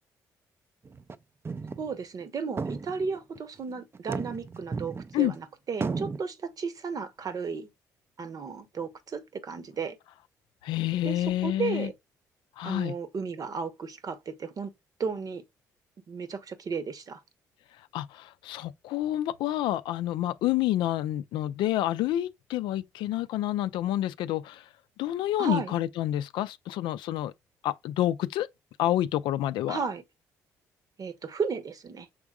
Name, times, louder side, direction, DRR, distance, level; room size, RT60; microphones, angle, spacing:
sound 1, 0.9-1.2 1.4-1.9 2.2-2.3 2.6-3.4 3.9-5.4 5.8-6.2, right 4 dB, 30° right, 0.4 m, -34 dB
voice 1, 1.8-7.7 8.2-10.0 11.0-11.9 12.6-14.7 15.0-15.4 16.1-17.2 25.4-25.7 29.7-30.0 31.0-32.1, right 5 dB, 50° right, 0.9 m, -34 dB
voice 2, 10.6-11.9 12.6-12.9 17.9-24.6 25.0-27.3 27.6-28.5 28.8-29.8, left 13 dB, 70° left, 0.4 m, -28 dB
6.1 x 3.6 x 2.3 m
hypercardioid pair, 50°, 8 cm